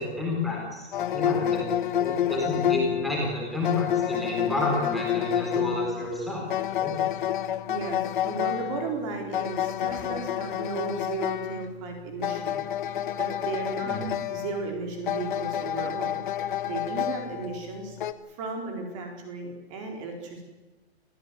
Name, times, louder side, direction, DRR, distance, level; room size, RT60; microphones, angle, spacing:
voice 1, 0.0-1.7 2.0-6.5 6.8-6.9 13.8-14.1, left 2 dB, ahead, -3 dB, 4.1 m, -30 dB
sound 1, 0.9-18.1, left 10 dB, 45° left, 1.3 m, -29 dB
voice 2, 7.7-14.0 14.3-16.2 16.7-18.0 18.3-20.4, right 4 dB, 30° right, 3 dB, 4.6 m, -35 dB
26.5 x 15.5 x 9.7 m, 1.2 s
hypercardioid pair, 180°, 34 cm